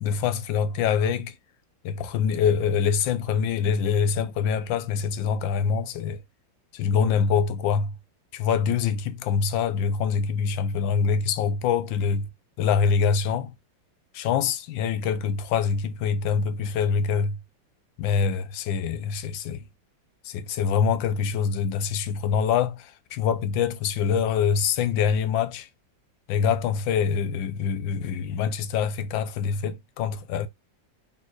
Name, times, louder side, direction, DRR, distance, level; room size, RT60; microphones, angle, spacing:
voice 1, 0.0-1.3 1.8-6.2 6.7-7.9 8.3-12.3 12.6-13.5 14.1-17.4 18.0-19.6 20.2-25.7 26.3-30.5, left 6 dB, 85° left, 1.4 m, -25 dB
4.4 x 3.3 x 3.0 m
omnidirectional pair, 2.0 m